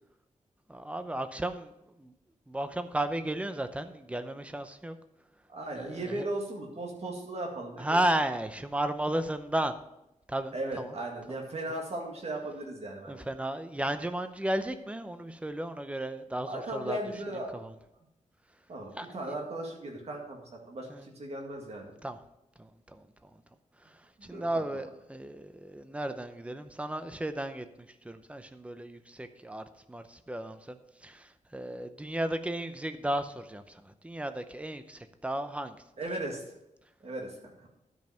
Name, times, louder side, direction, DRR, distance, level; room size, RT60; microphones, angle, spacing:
voice 1, 0.7-1.7 2.0-2.1 2.5-4.9 5.7-6.3 7.8-9.7 10.3-10.9 13.1-17.0 17.5-17.7 19.0-19.3 20.9-21.1 22.0-22.2 22.6-23.3 23.8-35.8, right 1 dB, 10° right, 9 dB, 0.7 m, -34 dB
voice 2, 5.5-8.0 10.5-13.2 16.5-17.6 18.7-21.9 24.2-24.7 36.0-36.4 37.0-37.5, right 1 dB, 55° right, 0 dB, 2.1 m, -37 dB
12.0 x 5.3 x 5.7 m, 0.86 s
wide cardioid pair, 140°, 13 cm